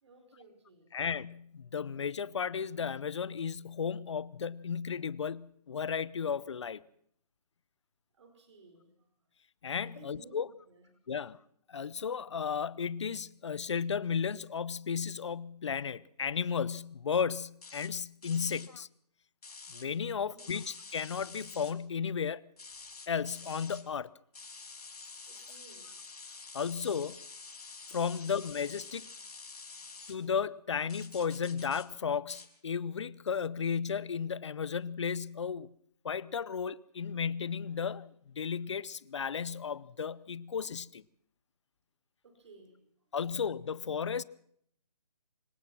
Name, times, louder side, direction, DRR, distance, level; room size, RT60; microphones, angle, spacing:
voice 1, 0.0-0.9 8.1-8.9 9.8-11.3 18.4-18.7 20.0-20.6 25.2-25.9 29.8-29.9 42.2-42.8, right 3 dB, 45° right, 4.8 m, -57 dB
voice 2, 0.9-6.8 9.6-10.5 11.1-11.4 11.7-18.9 19.7-22.4 23.1-24.1 26.5-27.2 27.9-29.1 30.1-35.7 36.0-41.0 43.1-44.2, left 6 dB, 45° left, 0.8 m, -34 dB
sound 1, 17.6-17.9 18.2-18.7 19.4-19.9 20.4-21.7 22.6-23.8 24.3-30.2 30.9-31.9 32.3-32.5, left 4 dB, 70° left, 5.2 m, -48 dB
26.0 x 17.0 x 6.1 m
hypercardioid pair, 165°, 20 cm